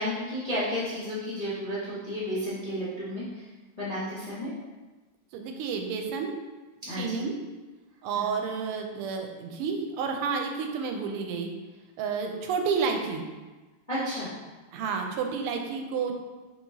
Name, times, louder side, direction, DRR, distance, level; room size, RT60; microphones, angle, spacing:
voice 1, 0.0-3.4 3.8-4.5 6.8-7.2 8.1-8.2 13.9-14.3, equal, 40° left, -10 dB, 0.5 m, -32 dB
voice 2, 5.3-6.3 7.0-7.3 8.0-11.5 12.0-13.2 14.7-16.1, right 5 dB, 90° right, 4 dB, 1.5 m, -30 dB
4.6 x 3.6 x 2.7 m, 1.2 s
omnidirectional pair, 2.4 m